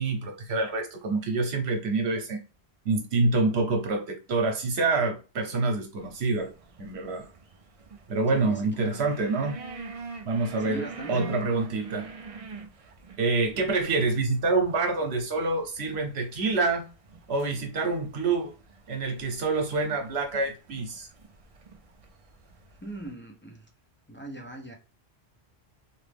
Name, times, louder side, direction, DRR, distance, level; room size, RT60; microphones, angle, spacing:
voice 1, 0.0-2.4 2.8-6.5 6.8-7.3 8.1-9.6 10.2-12.1 13.2-16.9 17.3-18.5 18.9-21.1, right 3 dB, 70° right, 1.1 m, -27 dB
sound 1, 6.0-23.1, right 4 dB, 50° right, 0.4 m, -46 dB
voice 2, 8.3-9.0 10.6-11.3 22.8-23.7 24.1-24.7, right 1 dB, 20° left, 0.3 m, -40 dB
3.0 x 2.4 x 3.4 m
omnidirectional pair, 1.1 m